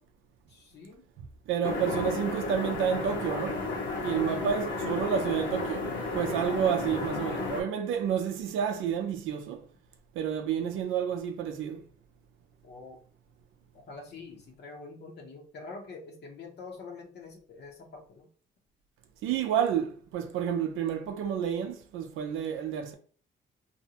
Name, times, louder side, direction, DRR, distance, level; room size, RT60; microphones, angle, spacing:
voice 1, 0.5-1.0 4.1-4.6 12.6-13.0 13.7-18.3, left 3 dB, 55° left, 0.7 m, -46 dB
voice 2, 1.2-3.6 4.0-9.6 10.1-11.9 19.2-22.9, right 8 dB, 85° right, 0.5 m, -30 dB
sound 1, 1.6-7.6, left 2 dB, 75° left, 0.9 m, -33 dB
2.6 x 2.0 x 2.8 m
cardioid pair, 90°, 20 cm